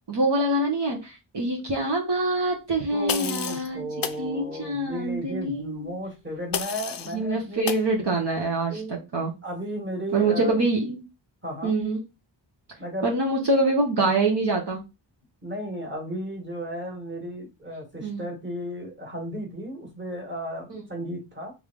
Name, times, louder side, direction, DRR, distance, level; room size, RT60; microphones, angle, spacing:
voice 1, 0.1-3.8 4.2-5.9 7.1-9.3 10.1-11.0 11.6-12.0 13.0-14.8 18.0-18.2 20.7-20.8, right 2 dB, 60° right, 0 dB, 1.1 m, -25 dB
voice 2, 2.9-7.7 8.5-9.0 9.4-10.5 11.4-11.7 12.8-13.1 15.4-21.5, equal, 25° right, 1 dB, 1.6 m, -34 dB
sound 1, 3.1-3.7 4.0-4.2 6.5-7.1 7.7-7.9, left 8 dB, 50° left, 0.4 m, -30 dB
3.6 x 3.5 x 3.6 m, 0.26 s
wide cardioid pair, 110°, 46 cm